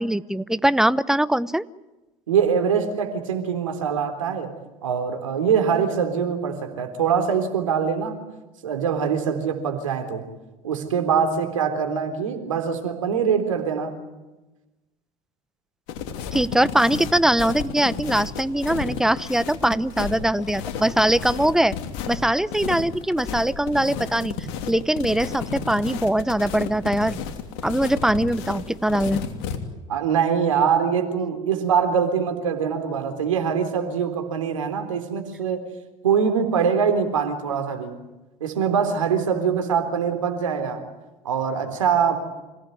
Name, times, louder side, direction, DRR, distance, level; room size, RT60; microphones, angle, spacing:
voice 1, 0.0-1.6 16.3-21.8 22.1-24.3 24.7-27.2 27.6-29.2, right 1 dB, 5° right, 16 dB, 0.9 m, -22 dB
voice 2, 2.3-4.5 4.8-8.2 8.6-10.2 10.6-13.9 20.8-20.9 29.9-35.6 36.0-38.0 38.4-40.8 41.2-42.2, right 7 dB, 85° right, 6 dB, 3.6 m, -23 dB
sound 1, 15.9-29.6, left 7 dB, 65° left, 3.0 m, -32 dB
27.5 x 17.5 x 9.4 m, 1.1 s
hypercardioid pair, 75°, 16 cm